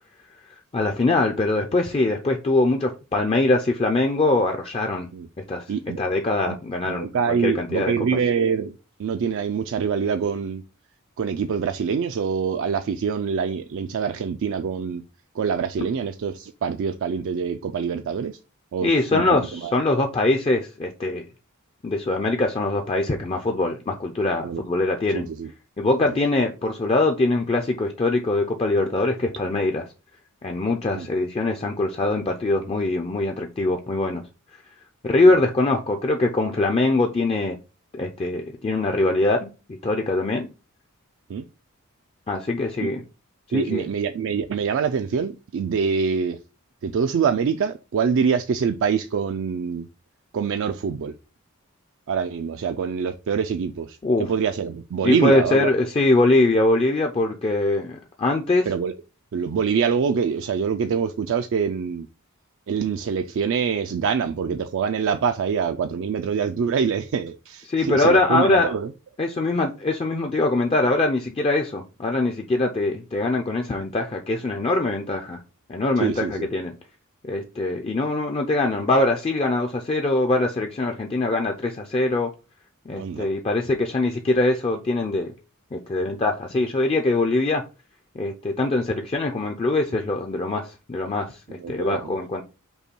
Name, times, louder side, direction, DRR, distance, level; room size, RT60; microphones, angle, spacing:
voice 1, 0.7-5.1 5.5-5.6 6.0-7.9 18.8-21.2 21.8-25.3 25.8-29.8 30.4-34.2 35.0-37.6 37.9-39.5 39.8-40.5 42.3-43.0 43.5-43.8 54.0-54.3 55.0-58.7 67.7-68.7 69.2-75.4 75.7-76.7 77.3-82.3 82.9-85.3 85.7-87.6 88.2-92.4, left 2 dB, 25° left, 0.4 m, -22 dB
voice 2, 5.7-6.0 6.5-6.6 6.8-8.7 9.0-10.6 11.2-15.0 15.4-18.4 18.7-20.0 24.4-24.6 25.1-25.5 26.1-26.2 30.9-31.1 41.3-41.4 43.5-46.4 46.8-49.9 50.3-51.1 52.1-55.7 58.7-58.9 59.3-62.1 62.7-68.9 76.0-76.5 82.9-83.3 91.6-92.2, right 6 dB, 60° right, 0.3 m, -25 dB
5.4 x 2.2 x 4.3 m
head